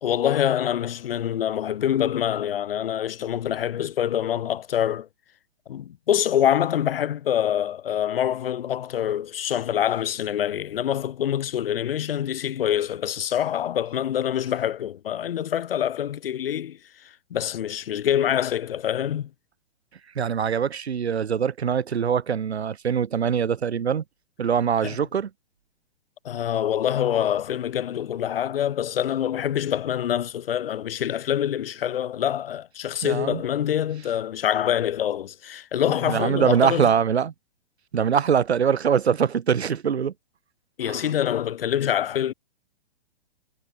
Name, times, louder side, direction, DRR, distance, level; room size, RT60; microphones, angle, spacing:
voice 1, 0.0-5.1 5.7-16.8 17.3-19.3 24.8-25.0 26.3-36.9 40.8-42.3, left 10 dB, 65° left, 1.9 m, -25 dB
voice 2, 20.1-24.0 24.4-25.3 33.0-33.4 36.0-37.3 37.9-40.1 40.8-41.1, right 7 dB, 90° right, 4.6 m, -23 dB
hypercardioid pair, 160°, 31 cm